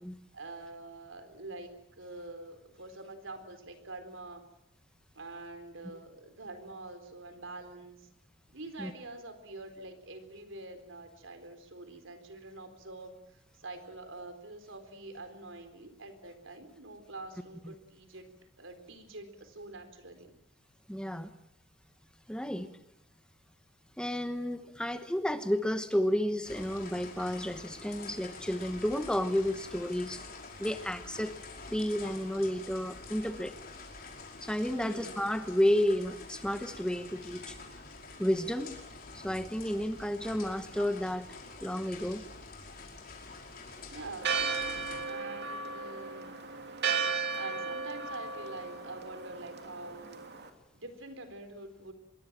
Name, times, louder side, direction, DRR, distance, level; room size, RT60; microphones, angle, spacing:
voice 1, 0.3-4.4 5.1-8.1 8.5-18.3 18.6-20.3 34.7-35.2 43.9-44.4 45.1-46.3 47.3-50.2 50.7-51.9, right 2 dB, 75° right, 9 dB, 4.1 m, -46 dB
voice 2, 20.9-21.3 22.3-22.7 24.0-30.2 30.6-31.3 31.7-33.5 34.4-37.6 38.2-38.8 39.1-42.2, equal, 5° left, 9 dB, 1.1 m, -31 dB
sound 1, 26.4-45.0, left 3 dB, 50° left, 5.2 m, -47 dB
Church bell, 44.2-50.5, right 5 dB, 55° right, 2.9 m, -35 dB
25.5 x 22.5 x 7.5 m, 0.81 s
head